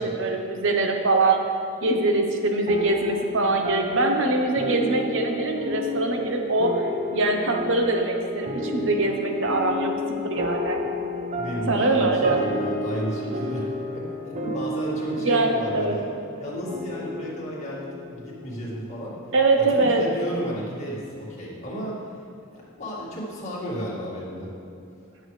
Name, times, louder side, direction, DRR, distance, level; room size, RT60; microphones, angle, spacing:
voice 1, 0.0-1.4 1.8-6.9 7.1-9.9 10.2-10.8 11.7-12.4 15.2-16.0 19.3-20.0, right 2 dB, 60° right, 3 dB, 0.9 m, -23 dB
sound 1, 2.7-19.5, left 1 dB, 35° right, 0.6 m, -32 dB
voice 2, 11.4-13.6 13.9-14.0 14.4-16.1 16.4-19.1 19.6-22.2 22.5-24.5, equal, 30° left, -7 dB, 2.1 m, -33 dB
11.5 x 6.3 x 3.2 m, 2.5 s
head